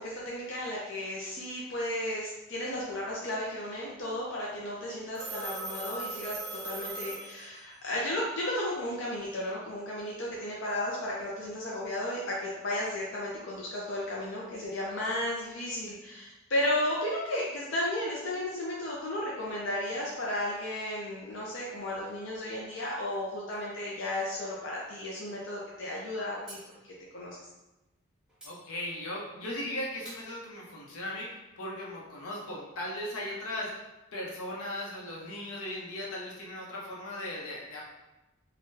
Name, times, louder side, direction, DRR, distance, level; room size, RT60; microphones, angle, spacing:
voice 1, 0.0-6.4 6.6-26.6 27.1-27.4, left 1 dB, 55° left, -5 dB, 0.5 m, -34 dB
Telephone, 5.1-7.9, right 2 dB, 45° right, 0.8 m, -39 dB
sound 1, 23.4-24.9 26.5-26.6 28.3-28.5 29.4-29.6 30.0-30.3, right 1 dB, 5° right, 0.6 m, -51 dB
voice 2, 28.4-33.7 34.1-37.8, left 1 dB, 85° left, -3 dB, 0.8 m, -37 dB
3.7 x 2.2 x 2.6 m, 1.0 s
head